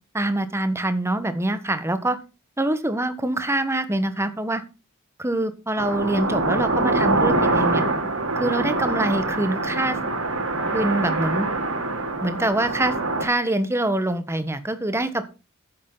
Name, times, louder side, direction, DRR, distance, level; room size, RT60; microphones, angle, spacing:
voice 1, 0.1-2.2 2.6-4.6 5.2-7.8 8.3-10.0 10.7-11.5 12.2-12.9 13.2-15.2, right 1 dB, 10° right, 10 dB, 1.4 m, -24 dB
sound 1, 5.8-13.2, right 2 dB, 75° right, 3.8 m, -24 dB
13.5 x 10.0 x 4.0 m, 0.30 s
head